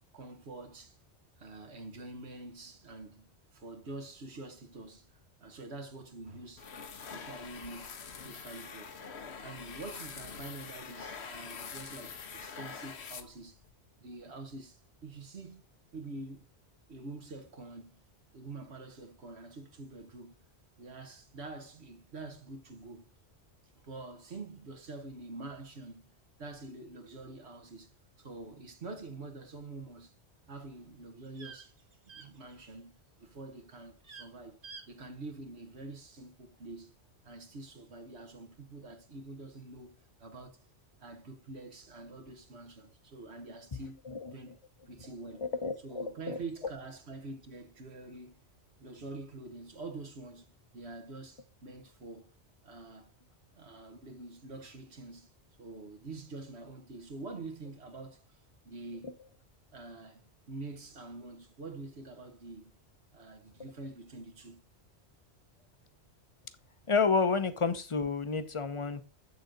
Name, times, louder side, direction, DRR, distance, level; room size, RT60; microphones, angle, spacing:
voice 1, 0.1-1.0 1.4-6.7 7.1-8.9 9.4-13.6 14.0-15.6 15.9-16.5 16.9-18.0 18.3-20.4 20.8-23.1 23.8-26.1 26.4-27.9 28.2-30.2 30.5-31.7 32.1-34.6 34.9-36.9 37.2-40.7 41.0-44.0 44.3-44.6 44.9-45.5 45.8-48.4 48.8-52.3 52.6-53.1 53.5-55.3 55.6-58.4 58.6-59.1 59.7-60.2 60.5-62.8 63.1-64.6, right 3 dB, 70° right, 1.5 m, -46 dB
sound 1, 6.6-13.7, left 6 dB, 70° left, 1.2 m, -45 dB
sound 2, 30.6-33.0 33.2-33.6 33.9-34.3 34.6-34.9 35.1-35.2, right 5 dB, 50° right, 1.5 m, -50 dB
voice 2, 45.4-46.4 66.9-69.0, left 4 dB, 30° left, 0.8 m, -30 dB
7.7 x 7.0 x 3.9 m
omnidirectional pair, 1.2 m